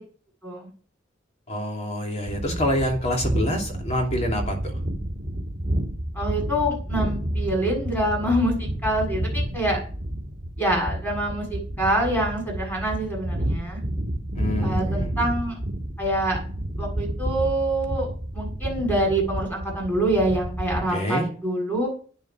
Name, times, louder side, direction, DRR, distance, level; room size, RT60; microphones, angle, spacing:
voice 1, 1.5-4.8 14.3-15.1 20.9-21.3, equal, 35° left, 2 dB, 2.9 m, -27 dB
sound 1, 2.3-20.9, right 1 dB, 40° right, 2.0 m, -30 dB
voice 2, 6.1-9.8 10.6-13.8 14.6-15.6 16.0-16.4 16.8-18.1 18.3-21.9, right 1 dB, 10° left, -1 dB, 7.2 m, -25 dB
12.0 x 9.5 x 6.1 m, 0.42 s
head